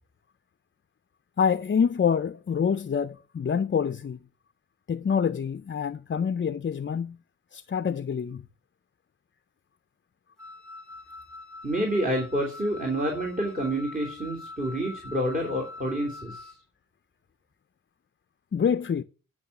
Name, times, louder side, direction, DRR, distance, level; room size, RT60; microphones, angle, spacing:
voice 1, 1.4-4.2 4.9-7.2 7.5-8.5 18.5-19.0, left 7 dB, 40° left, 0.5 m, -26 dB
Wind instrument woodwind instrument, 10.4-16.6, left 3 dB, 5° left, 2.1 m, -44 dB
voice 2, 11.6-16.5, right 1 dB, 25° right, 3.3 m, -28 dB
10.5 x 6.1 x 6.8 m
wide cardioid pair, 65°, 32 cm